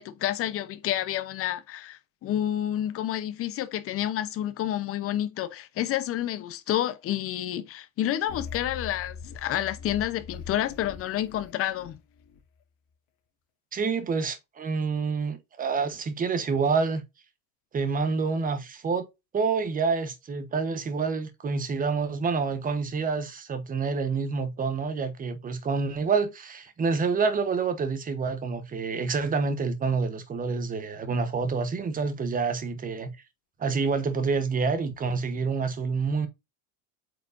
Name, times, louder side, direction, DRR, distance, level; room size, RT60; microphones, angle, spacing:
voice 1, 0.0-12.0, left 12 dB, 30° left, 0.9 m, -29 dB
sound 1, 8.3-12.4, left 6 dB, 45° left, 2.8 m, -41 dB
voice 2, 13.7-17.0 17.7-19.1 19.3-33.1 33.6-36.3, right 4 dB, 15° right, 1.2 m, -27 dB
8.3 x 4.9 x 2.7 m
supercardioid pair, 155°, 47 cm